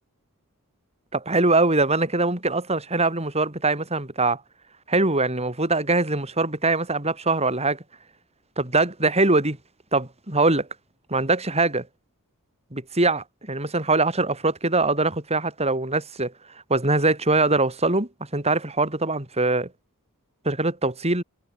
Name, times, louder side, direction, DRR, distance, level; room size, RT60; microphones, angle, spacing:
voice 1, 1.1-4.4 4.9-7.8 8.6-9.6 9.9-10.7 11.1-11.9 12.7-16.3 16.7-19.7 20.4-21.2, right 2 dB, 30° right, 6.0 m, -22 dB
head